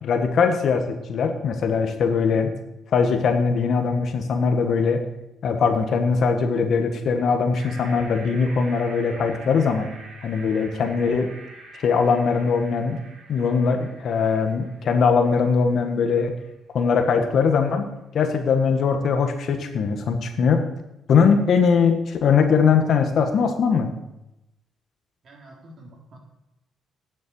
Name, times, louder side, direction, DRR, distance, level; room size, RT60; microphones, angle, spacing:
voice 1, 0.0-2.5 2.9-5.0 5.4-9.9 10.2-11.3 11.7-13.0 13.3-16.3 16.7-17.9 18.1-20.7 21.1-23.9, left 5 dB, 65° left, 6 dB, 1.5 m, -21 dB
sound 1, 7.5-15.7, right 2 dB, 70° right, 3.7 m, -45 dB
voice 2, 25.2-26.2, right 1 dB, 50° right, -1 dB, 3.9 m, -47 dB
9.9 x 7.7 x 7.6 m, 0.92 s
cardioid pair, 90°, 0 cm